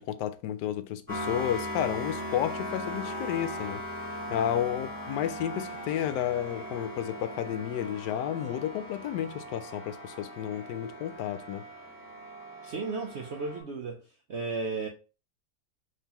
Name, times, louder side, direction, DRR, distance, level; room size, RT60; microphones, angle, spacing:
voice 1, 0.0-3.8 4.3-11.6, left 10 dB, 75° left, 1.1 m, -32 dB
sound 1, 1.1-13.6, equal, 5° right, 1.7 m, -39 dB
voice 2, 12.6-14.0 14.3-14.9, right 3 dB, 80° right, 0.6 m, -34 dB
5.4 x 3.2 x 2.9 m
omnidirectional pair, 1.9 m